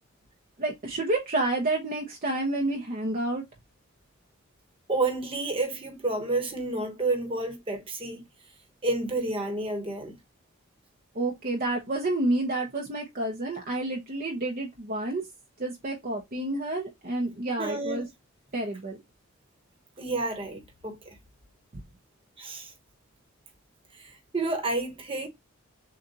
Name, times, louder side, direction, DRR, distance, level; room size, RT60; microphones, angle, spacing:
voice 1, 0.6-3.4 11.1-15.2 15.6-18.1 18.5-19.0, right 2 dB, 40° right, 0.8 m, -29 dB
voice 2, 4.9-8.2 8.8-10.2 17.6-18.0 20.0-21.0 22.4-22.7 24.0-25.3, right 2 dB, 25° right, 1.2 m, -30 dB
6.6 x 2.4 x 2.7 m
head